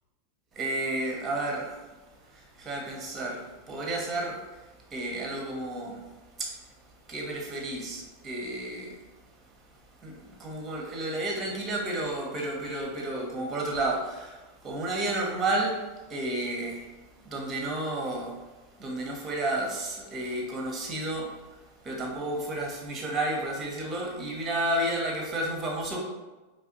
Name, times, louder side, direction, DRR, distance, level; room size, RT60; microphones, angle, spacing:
voice 1, 0.5-1.9 2.2-6.7 7.1-9.1 10.0-16.9 17.2-18.4 18.8-26.0, right 1 dB, 20° right, -1 dB, 1.2 m, -32 dB
4.7 x 3.4 x 2.8 m, 1.2 s
figure-of-eight pair, 90°, 0 cm